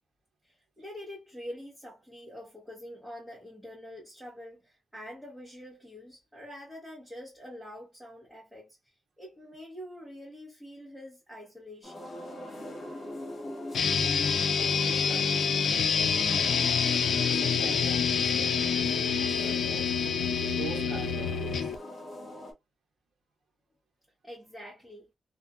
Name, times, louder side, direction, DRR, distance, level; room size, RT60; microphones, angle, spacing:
voice 1, 0.4-8.8 9.2-12.2 24.2-25.1, equal, 10° right, 1.0 m, -45 dB
sound 1, 11.8-22.5, left 1 dB, 45° left, 1.2 m, -41 dB
sound 2, 13.7-21.8, left 6 dB, 75° left, 0.4 m, -27 dB
voice 2, 14.6-16.3 17.0-20.0 20.4-21.8, right 5 dB, 75° right, 0.9 m, -44 dB
2.6 x 2.4 x 2.5 m
wide cardioid pair, 145°, 0 cm